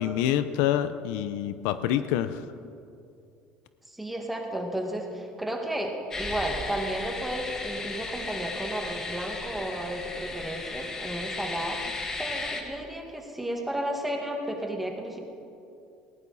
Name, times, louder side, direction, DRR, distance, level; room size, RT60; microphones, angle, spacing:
voice 1, 0.0-2.4, left 11 dB, 85° left, 12 dB, 0.7 m, -26 dB
voice 2, 3.9-11.8 12.2-15.2, right 1 dB, 5° right, 1 dB, 1.9 m, -33 dB
sound 1, 6.1-12.6, left 3 dB, 20° left, 1.6 m, -35 dB
19.5 x 17.5 x 4.2 m, 2.6 s
cardioid pair, 150°, 3 cm